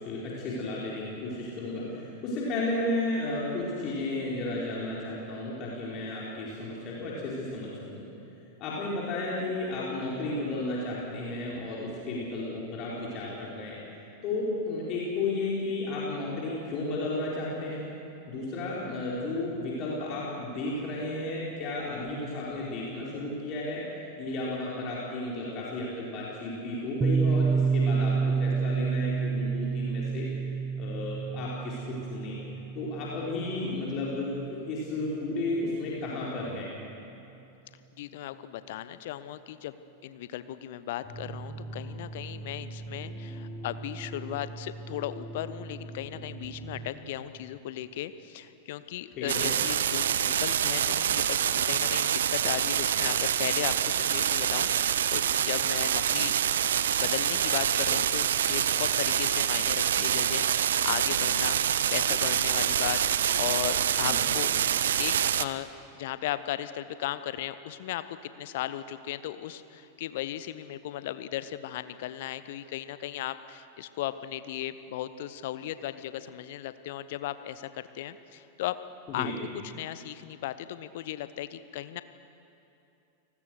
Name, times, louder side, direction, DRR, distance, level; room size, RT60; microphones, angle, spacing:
voice 1, 0.0-8.1 8.6-13.8 14.2-17.9 18.3-23.8 24.2-30.5 30.8-32.4 32.7-36.7 49.2-49.5 64.0-64.2 79.1-79.3, left 2 dB, 35° left, -5 dB, 4.9 m, -33 dB
Piano, 27.0-34.4, right 5 dB, 15° right, 0.5 m, -29 dB
voice 2, 38.0-39.8 40.0-56.4 57.0-64.5 65.0-65.7 65.9-78.8 79.1-82.0, left 12 dB, 55° left, 13 dB, 1.0 m, -36 dB
sound 1, 41.0-46.8, right 2 dB, 20° left, 6.8 m, -41 dB
sound 2, 49.3-65.5, right 9 dB, 65° right, 0.6 m, -26 dB
29.0 x 19.5 x 6.6 m, 2.8 s
figure-of-eight pair, 90°, 0 cm